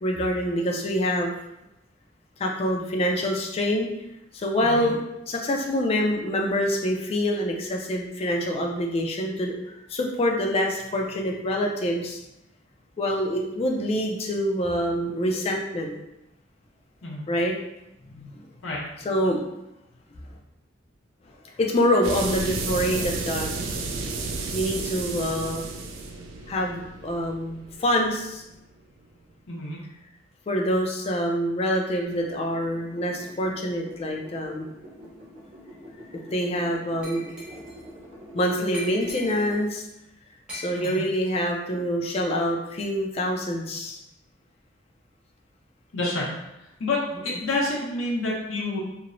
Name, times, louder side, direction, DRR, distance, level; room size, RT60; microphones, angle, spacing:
voice 1, 0.0-1.3 2.4-3.9 4.3-5.0 5.3-9.6 9.9-12.2 13.0-15.9 17.3-17.5 18.1-18.4 19.0-19.4 21.6-23.5 24.5-25.6 26.5-28.4 30.5-34.7 36.1-37.3 38.3-39.9 40.5-44.0, equal, 30° left, 1 dB, 0.3 m, -26 dB
sound 1, 22.0-28.5, right 3 dB, 80° right, 0.4 m, -32 dB
voice 2, 29.5-29.8 40.7-41.0 45.9-46.3 46.8-48.8, left 2 dB, 90° left, -4 dB, 0.7 m, -28 dB
sound 2, 32.0-39.6, equal, 40° right, 0.7 m, -45 dB
Glass, 37.0-37.8 38.7-39.7 40.5-41.4, left 1 dB, 5° right, 0.7 m, -40 dB
2.9 x 2.0 x 2.5 m, 0.87 s
head